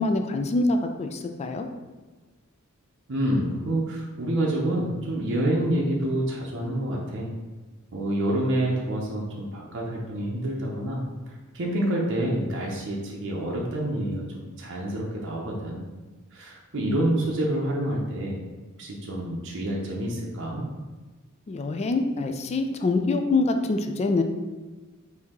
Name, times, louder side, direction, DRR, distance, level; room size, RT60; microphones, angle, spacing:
voice 1, 0.0-1.7 21.5-24.2, left 3 dB, 30° left, 6 dB, 0.3 m, -25 dB
voice 2, 3.1-7.3 7.9-11.0 11.5-15.8 16.3-18.4 18.8-20.6, right 1 dB, 60° right, -2 dB, 0.7 m, -27 dB
4.4 x 2.8 x 3.6 m, 1.3 s
head